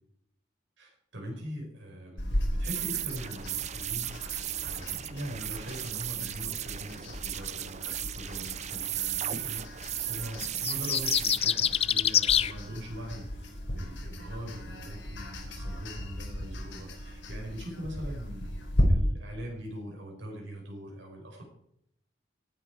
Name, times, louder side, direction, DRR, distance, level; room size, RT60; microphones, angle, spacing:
voice 1, 0.8-18.5 18.8-21.4, equal, 75° right, 0 dB, 5.4 m, -42 dB
sound 1, 2.2-18.8, equal, 65° left, 4.6 m, -37 dB
sound 2, 2.6-11.7, right 12 dB, 35° right, 0.5 m, -36 dB
sound 3, 10.4-12.5, left 10 dB, 30° left, 0.4 m, -25 dB
19.0 x 9.6 x 4.8 m, 0.73 s
head